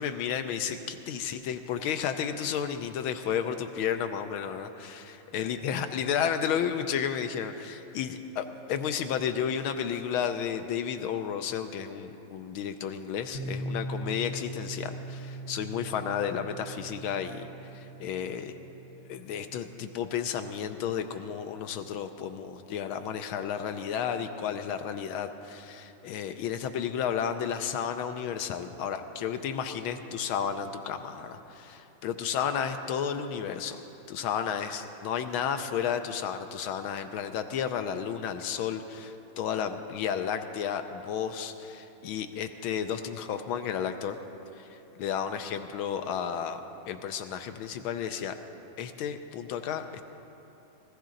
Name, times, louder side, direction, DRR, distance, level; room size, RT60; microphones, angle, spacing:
voice 1, 0.0-18.6 19.1-33.8 34.1-44.2 44.6-46.6 46.9-48.4 48.8-50.0, left 8 dB, 80° left, 7 dB, 1.4 m, -32 dB
Piano, 13.3-20.8, right 1 dB, 50° left, 1.1 m, -41 dB
19.5 x 14.5 x 3.8 m, 3.0 s
omnidirectional pair, 2.4 m